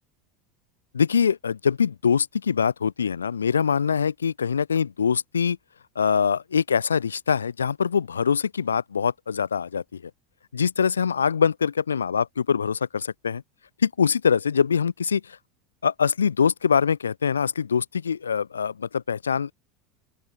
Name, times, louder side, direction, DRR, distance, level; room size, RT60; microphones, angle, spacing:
voice 1, 0.9-5.6 6.0-10.0 10.5-13.4 13.8-15.4 15.8-19.5, left 6 dB, 75° left, 2.0 m, -23 dB
open air
figure-of-eight pair, 80°, 0 cm